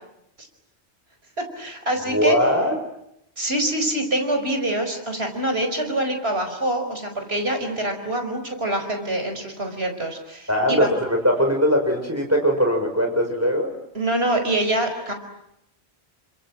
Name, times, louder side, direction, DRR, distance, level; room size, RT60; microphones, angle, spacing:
voice 1, 1.6-2.4 3.4-10.9 13.9-15.1, right 1 dB, 70° right, 5 dB, 5.4 m, -25 dB
voice 2, 2.1-2.7 10.5-13.7, equal, 15° right, 2 dB, 6.4 m, -20 dB
29.5 x 26.0 x 7.7 m, 0.80 s
omnidirectional pair, 1.1 m